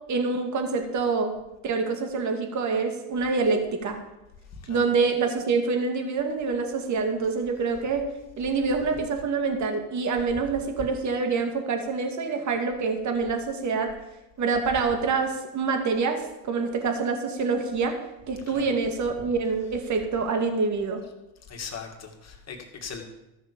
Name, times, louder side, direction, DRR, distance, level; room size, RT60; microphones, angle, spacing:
voice 1, 0.1-1.3 1.6-4.0 4.7-8.1 8.4-13.9 14.4-18.0 18.3-21.0, right 4 dB, 35° right, 5 dB, 2.2 m, -26 dB
voice 2, 21.5-23.0, left 6 dB, 30° left, 2 dB, 2.4 m, -39 dB
13.5 x 6.5 x 6.9 m, 0.93 s
supercardioid pair, 100°, 50 cm